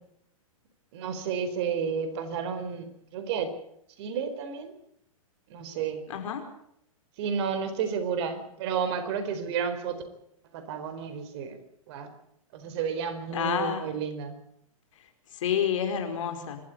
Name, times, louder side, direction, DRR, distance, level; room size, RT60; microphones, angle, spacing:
voice 1, 0.9-3.5 4.0-4.7 5.5-6.0 7.2-10.0 10.5-11.6 11.9-12.1 12.5-14.4, right 6 dB, 50° right, 9 dB, 4.3 m, -31 dB
voice 2, 6.1-6.4 13.3-13.9 14.9-16.6, left 8 dB, 60° left, 6 dB, 5.1 m, -30 dB
27.0 x 13.5 x 8.5 m, 0.72 s
hypercardioid pair, 120°, 18 cm